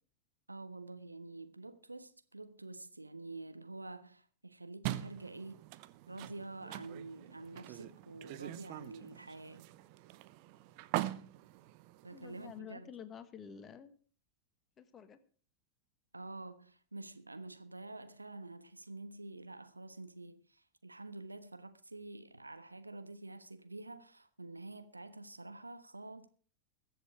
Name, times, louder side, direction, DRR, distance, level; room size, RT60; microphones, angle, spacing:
voice 1, 0.5-5.6 6.1-9.7 12.0-12.9 16.1-26.3, right 2 dB, 85° right, 1.2 m, -48 dB
sound 1, 4.8-12.6, right 15 dB, 45° right, 0.8 m, -43 dB
voice 2, 12.1-13.9 14.8-15.2, left 8 dB, 25° left, 1.3 m, -50 dB
21.5 x 7.8 x 4.8 m
figure-of-eight pair, 90°, 0 cm